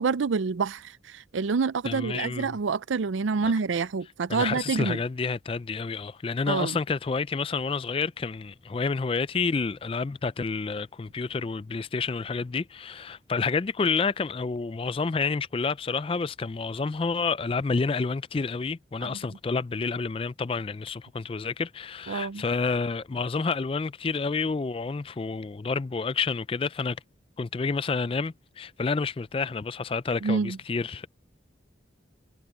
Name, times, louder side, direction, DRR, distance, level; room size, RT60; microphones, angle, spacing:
voice 1, 0.0-5.0 6.5-6.8 19.0-19.2 22.1-22.4 30.2-30.6, right 5 dB, 85° right, 0.5 m, -27 dB
voice 2, 1.8-2.6 3.4-3.5 4.3-27.0 27.4-31.1, left 4 dB, 30° left, 0.3 m, -29 dB
head